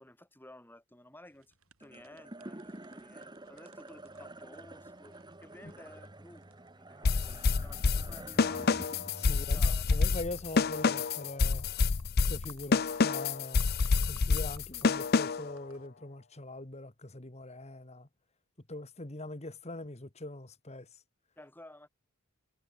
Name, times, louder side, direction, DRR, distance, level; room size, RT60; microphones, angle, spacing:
voice 1, 0.0-8.8 9.3-9.8 21.4-21.9, left 1 dB, 10° left, 4.1 m, -54 dB
sound 1, 1.3-15.9, right 4 dB, 70° right, 7.2 m, -63 dB
sound 2, 1.8-12.3, right 1 dB, 20° right, 1.4 m, -49 dB
sound 3, 7.0-15.5, left 4 dB, 45° left, 0.5 m, -28 dB
voice 2, 9.1-11.7 12.3-13.6 14.1-18.1 18.7-20.9, left 2 dB, 30° left, 1.5 m, -42 dB
head